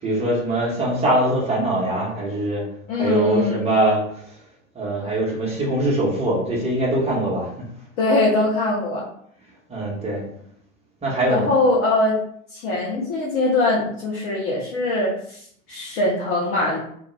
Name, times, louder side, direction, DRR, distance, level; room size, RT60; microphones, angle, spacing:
voice 1, 0.0-2.6 2.9-4.0 4.7-7.5 9.7-10.2 11.0-11.5, right 1 dB, 15° right, -4 dB, 0.8 m, -22 dB
voice 2, 2.9-3.6 8.0-9.0 11.3-12.2 12.5-16.8, left 2 dB, 20° left, -4 dB, 0.3 m, -22 dB
2.2 x 2.1 x 3.0 m, 0.67 s
figure-of-eight pair, 85°, 41 cm